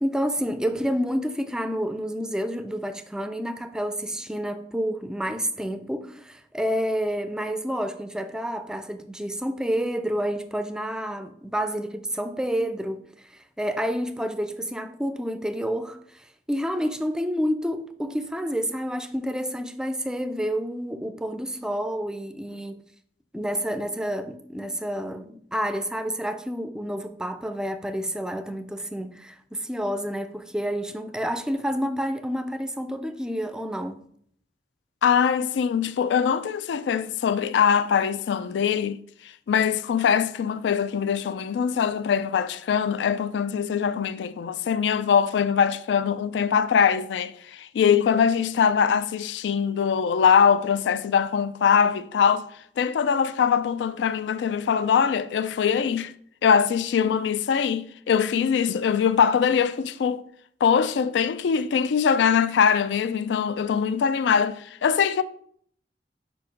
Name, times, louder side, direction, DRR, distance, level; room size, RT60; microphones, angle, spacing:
voice 1, 0.0-22.8 23.3-34.0 57.0-57.2, equal, 5° right, 0.4 m, -29 dB
voice 2, 35.0-39.0 39.5-52.5 52.8-56.1 56.4-60.2 60.6-65.2, left 7 dB, 80° left, 0.3 m, -22 dB
5.2 x 4.6 x 5.1 m
head